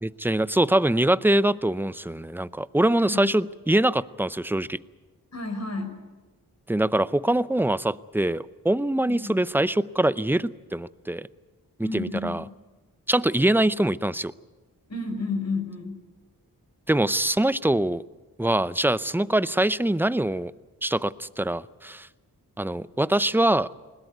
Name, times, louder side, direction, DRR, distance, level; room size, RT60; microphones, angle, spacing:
voice 1, 0.0-4.8 6.7-11.3 11.9-12.4 13.1-14.3 16.9-18.0 18.4-20.5 20.8-22.1 22.6-23.7, right 1 dB, 5° right, 17 dB, 0.6 m, -23 dB
voice 2, 5.3-6.0 9.1-9.4 11.8-12.4 14.9-16.0, left 3 dB, 45° left, 6 dB, 5.2 m, -31 dB
20.5 x 18.0 x 9.5 m, 1.2 s
cardioid pair, 45°, 38 cm